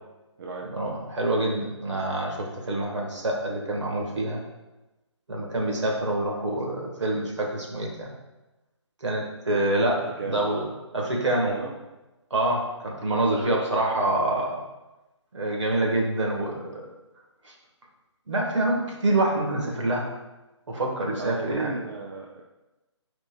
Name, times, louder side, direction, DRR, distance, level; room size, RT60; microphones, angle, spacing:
voice 1, 0.6-4.4 5.3-8.1 9.0-10.7 10.9-11.6 12.3-14.6 15.3-16.8 17.4-17.5 18.3-20.1 20.7-21.7, right 1 dB, 75° right, -1 dB, 1.7 m, -26 dB
voice 2, 9.5-9.8 10.2-10.5 11.5-11.8 21.2-22.4, right 4 dB, 50° right, 0 dB, 0.6 m, -35 dB
10.0 x 4.4 x 2.4 m, 1.0 s
figure-of-eight pair, 150°, 15 cm